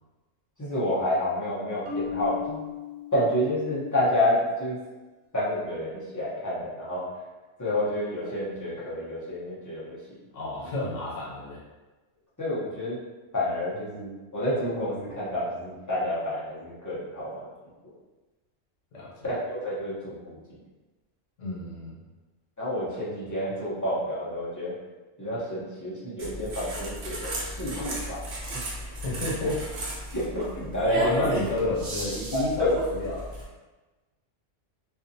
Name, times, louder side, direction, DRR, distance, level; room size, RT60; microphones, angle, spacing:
voice 1, 0.6-2.6 3.1-4.8 5.3-7.1 7.6-10.0 12.4-13.0 13.3-17.5 19.2-20.6 22.6-24.7 25.2-28.2 30.1-31.3 32.3-32.7, left 1 dB, 20° left, -9 dB, 0.6 m, -29 dB
Marimba xylophone, 1.9-3.9, left 7 dB, 80° right, 1.0 m, -36 dB
voice 2, 10.3-11.6 18.9-19.2 21.4-22.0 28.9-29.7 30.9-33.3, left 2 dB, 80° left, -5 dB, 1.2 m, -31 dB
sound 1, 26.2-33.4, right 1 dB, 55° right, 0.7 m, -35 dB
2.6 x 2.4 x 2.6 m, 1.2 s
omnidirectional pair, 1.3 m